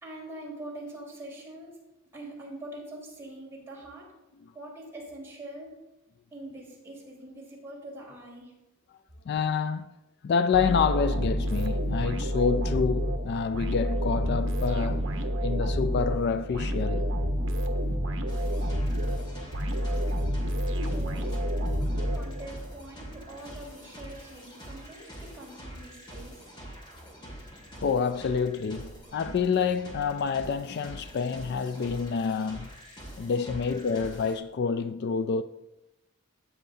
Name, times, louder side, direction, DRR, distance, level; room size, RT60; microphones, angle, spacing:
voice 1, 0.0-1.8 2.1-4.1 4.5-5.7 6.3-8.6 20.6-21.8 22.1-26.5, right 1 dB, 15° right, 4.0 m, -43 dB
voice 2, 9.3-9.9 10.2-15.1 15.4-17.1 27.8-32.7 33.2-35.4, left 5 dB, 55° left, 0.3 m, -28 dB
sound 1, 10.5-22.7, equal, 65° right, 1.0 m, -29 dB
sound 2, 18.3-34.4, equal, 20° left, 2.2 m, -45 dB
13.5 x 9.2 x 2.7 m
head